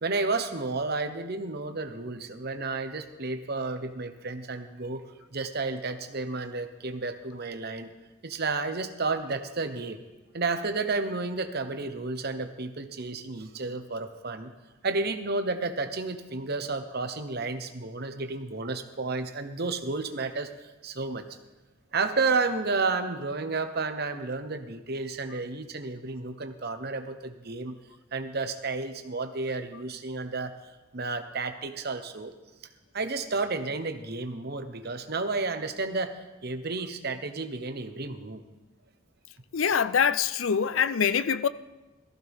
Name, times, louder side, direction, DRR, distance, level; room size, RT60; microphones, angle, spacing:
voice 1, 0.0-5.0 5.3-7.9 8.2-10.0 10.3-14.5 14.8-20.5 20.8-21.2 21.9-27.7 28.1-30.5 30.9-32.3 32.9-36.1 36.4-38.4, right 3 dB, 50° right, 1.0 m, -31 dB
voice 2, 39.5-41.5, left 7 dB, 75° left, 0.5 m, -24 dB
18.0 x 14.5 x 3.6 m
head